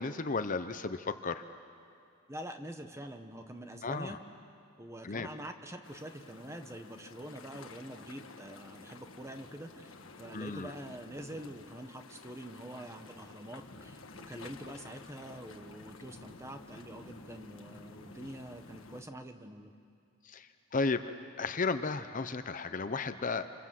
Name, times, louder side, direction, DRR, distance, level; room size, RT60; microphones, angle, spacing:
voice 1, 0.0-1.4 3.8-4.2 5.0-5.3 10.3-10.7 20.2-21.0 21.4-23.5, left 4 dB, 40° left, 10 dB, 0.8 m, -34 dB
voice 2, 2.3-4.2 4.8-19.7, right 1 dB, 15° right, 6 dB, 1.2 m, -45 dB
sound 1, 5.8-19.0, left 3 dB, 70° left, 1.6 m, -52 dB
28.5 x 27.0 x 7.6 m, 2.4 s
head